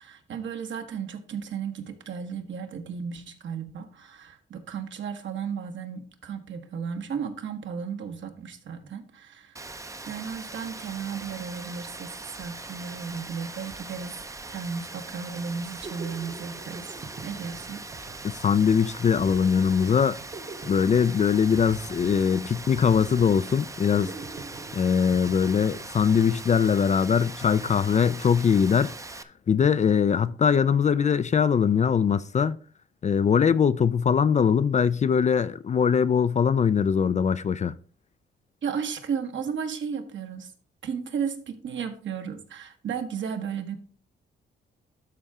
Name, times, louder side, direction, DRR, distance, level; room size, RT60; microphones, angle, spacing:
voice 1, 0.0-9.7 10.1-14.2 14.5-16.9 17.2-17.8 38.6-40.5 40.8-43.8, right 6 dB, 65° right, 1.3 m, -34 dB
Rain, 9.6-29.2, right 3 dB, 15° right, 0.6 m, -41 dB
sound 1, 15.5-26.3, right 3 dB, 35° right, 0.9 m, -45 dB
voice 2, 18.2-20.2 20.7-24.1 24.7-28.9 29.5-32.6 33.0-37.7, left 7 dB, 35° left, 0.4 m, -22 dB
12.5 x 4.3 x 3.6 m
cardioid pair, 90°, 21 cm